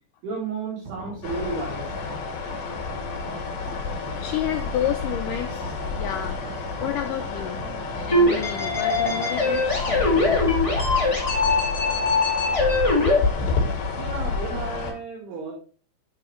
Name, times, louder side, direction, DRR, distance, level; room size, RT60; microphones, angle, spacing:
voice 1, 0.2-1.9 2.6-2.8 14.0-15.5, right 4 dB, 75° right, -6 dB, 5.8 m, -33 dB
sound 1, 0.8-14.7, right 3 dB, 45° right, 3.4 m, -42 dB
sound 2, 1.2-14.9, left 4 dB, 65° left, 3.6 m, -30 dB
voice 2, 4.2-5.6 6.0-6.4 6.8-7.7 7.9-10.5, left 10 dB, 90° left, 5 dB, 1.8 m, -30 dB
sound 3, 8.1-13.2, left 2 dB, 30° left, 0.5 m, -22 dB
8.5 x 7.8 x 3.2 m, 0.38 s
omnidirectional pair, 4.7 m